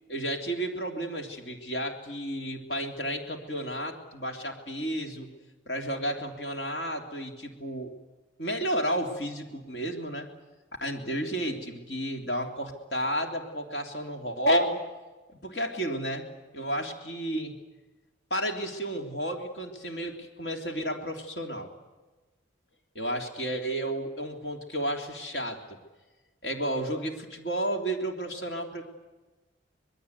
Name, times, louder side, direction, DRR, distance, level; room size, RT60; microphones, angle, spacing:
voice 1, 0.1-5.3 5.7-7.9 8.4-10.3 10.8-14.8 15.3-16.2 16.5-17.5 18.3-21.7 22.9-25.6 26.4-28.8, right 1 dB, 55° left, 2 dB, 3.3 m, -32 dB
26.0 x 21.5 x 8.3 m, 1.2 s
head